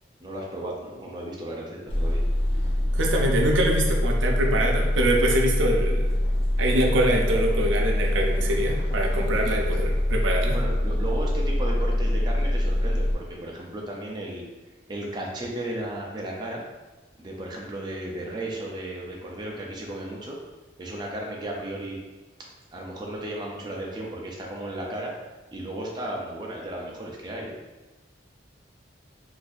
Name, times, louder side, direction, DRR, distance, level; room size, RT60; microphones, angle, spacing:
voice 1, 0.2-2.2 10.5-14.4 14.9-16.7 17.2-20.4 20.8-22.0 22.7-25.1 25.5-27.6, right 1 dB, 25° right, -3 dB, 0.5 m, -34 dB
sound 1, 1.9-13.1, left 1 dB, 30° left, 0.4 m, -24 dB
voice 2, 2.9-6.1 6.6-10.6, right 1 dB, 90° right, 1 dB, 0.5 m, -24 dB
3.9 x 2.6 x 2.4 m, 1.1 s
head